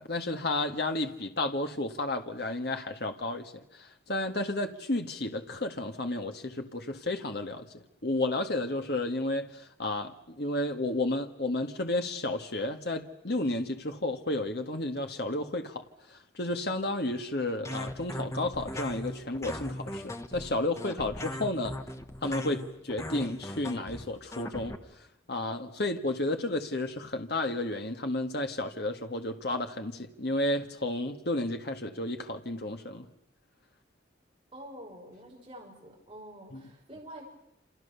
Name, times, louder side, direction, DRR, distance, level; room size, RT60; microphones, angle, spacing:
voice 1, 0.0-15.8 16.1-21.7 22.2-33.1 36.5-36.6, left 2 dB, 60° left, 5 dB, 1.8 m, -32 dB
sound 1, 17.6-24.8, left 1 dB, 15° left, 1.4 m, -39 dB
voice 2, 34.5-37.2, right 1 dB, 25° right, -2 dB, 6.2 m, -47 dB
28.0 x 27.5 x 7.0 m, 0.80 s
head